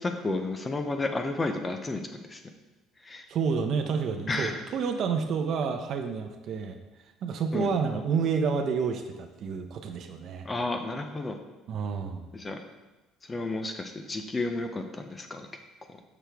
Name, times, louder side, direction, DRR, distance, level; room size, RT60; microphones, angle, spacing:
voice 1, 0.0-2.4 3.0-3.2 4.3-4.6 7.5-7.7 10.4-11.4 12.3-12.6 13.3-15.5, left 2 dB, 15° left, 6 dB, 0.5 m, -32 dB
voice 2, 3.3-6.8 7.2-10.5 11.7-12.3, right 5 dB, 45° right, 6 dB, 0.6 m, -29 dB
6.5 x 6.0 x 3.4 m, 1.1 s
cardioid pair, 160°, 0 cm